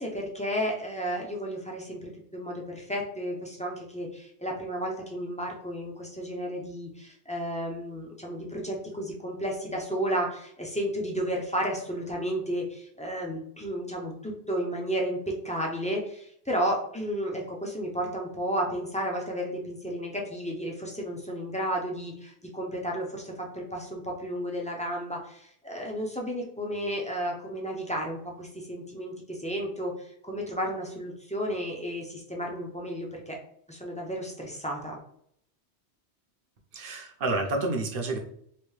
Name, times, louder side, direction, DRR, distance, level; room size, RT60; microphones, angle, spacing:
voice 1, 0.0-33.4 33.7-35.0, equal, 10° left, -1 dB, 0.4 m, -32 dB
voice 2, 36.7-38.2, right 2 dB, 55° right, 3 dB, 0.8 m, -29 dB
3.3 x 2.6 x 3.2 m, 0.69 s
omnidirectional pair, 1.2 m